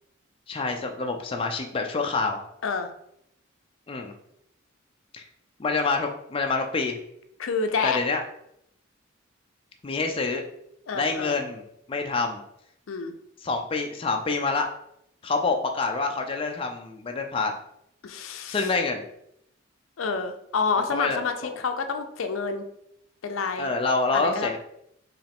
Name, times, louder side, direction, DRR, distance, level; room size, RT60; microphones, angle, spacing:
voice 1, 0.5-2.4 3.9-4.1 5.1-5.2 5.6-7.0 7.8-8.2 9.8-10.4 10.9-11.6 11.9-12.4 13.4-14.7 15.2-17.5 18.5-19.0 20.9-21.5 23.6-24.6, left 3 dB, 25° left, 3 dB, 0.4 m, -27 dB
voice 2, 7.4-8.0 10.9-11.4 12.9-13.1 18.0-18.7 20.0-22.6 23.2-23.7 24.1-24.6, left 5 dB, 80° left, 7 dB, 0.5 m, -28 dB
4.8 x 3.1 x 3.5 m, 0.77 s
head